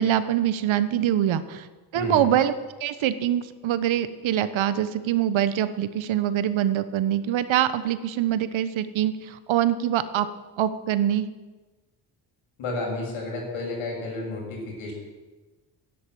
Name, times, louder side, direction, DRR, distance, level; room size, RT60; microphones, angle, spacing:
voice 1, 0.0-1.7 1.9-2.5 2.8-10.3 10.6-11.3, right 11 dB, 70° right, 13 dB, 1.2 m, -24 dB
voice 2, 1.9-2.3 12.6-14.9, left 2 dB, 75° left, 0 dB, 6.8 m, -31 dB
13.0 x 10.5 x 9.4 m, 1.2 s
cardioid pair, 85°, 49 cm